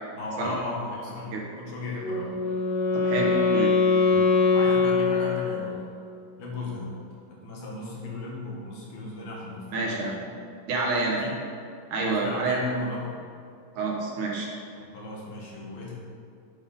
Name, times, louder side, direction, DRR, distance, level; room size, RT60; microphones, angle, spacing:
voice 1, 0.2-2.4 4.5-5.8 6.4-6.9 7.3-10.2 11.2-11.4 12.0-13.1 14.9-15.9, left 3 dB, 75° left, -3 dB, 3.6 m, -36 dB
Wind instrument woodwind instrument, 2.0-5.9, left 4 dB, 45° left, 2.7 m, -23 dB
voice 2, 2.9-3.7 4.1-4.2 9.7-10.1 10.7-11.2 11.9-12.6 13.8-14.5, right 3 dB, 65° right, -2 dB, 2.3 m, -28 dB
9.3 x 7.0 x 5.3 m, 2.4 s
omnidirectional pair, 4.3 m